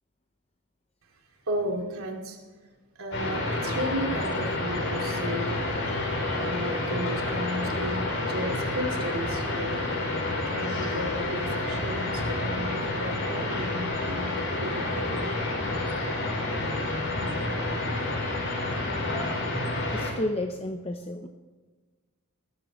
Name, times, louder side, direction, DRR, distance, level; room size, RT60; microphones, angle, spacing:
voice 1, 1.5-2.4 3.0-9.8 10.1-15.6 16.5-16.6, equal, 70° right, 1 dB, 2.8 m, -35 dB
sound 1, 3.1-20.1, left 2 dB, 60° left, 4.9 m, -29 dB
voice 2, 19.9-21.3, left 1 dB, 25° left, 5 dB, 0.7 m, -31 dB
18.5 x 15.0 x 3.1 m, 1.4 s
head